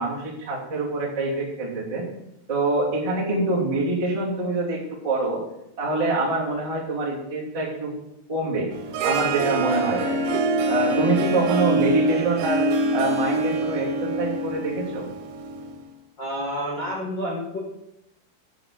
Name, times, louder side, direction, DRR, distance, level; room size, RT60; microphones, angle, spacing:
voice 1, 0.0-2.0 2.5-5.4 5.8-7.9 8.3-8.7 9.0-10.4 10.7-12.7 12.9-15.0, right 2 dB, 15° right, -6 dB, 1.5 m, -25 dB
Harp, 8.7-15.8, right 2 dB, 75° right, 3.1 m, -25 dB
voice 2, 16.2-17.6, equal, 80° left, -6 dB, 1.0 m, -29 dB
7.8 x 6.0 x 6.7 m, 0.84 s
omnidirectional pair, 5.3 m